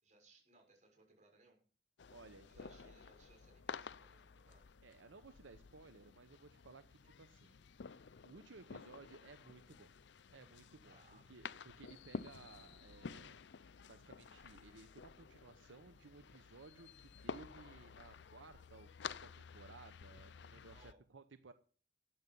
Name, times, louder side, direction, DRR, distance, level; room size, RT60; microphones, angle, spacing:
voice 1, 0.0-1.6 2.5-4.6 10.9-11.3 20.7-21.0, right 3 dB, 40° right, 1 dB, 6.0 m, -67 dB
sound 1, 2.0-20.9, left 5 dB, 65° left, 0.5 m, -52 dB
voice 2, 2.1-2.9 4.8-7.5 8.2-9.9 10.3-13.4 13.9-21.5, right 3 dB, 85° right, 10 dB, 0.8 m, -59 dB
13.5 x 9.5 x 5.5 m, 0.41 s
head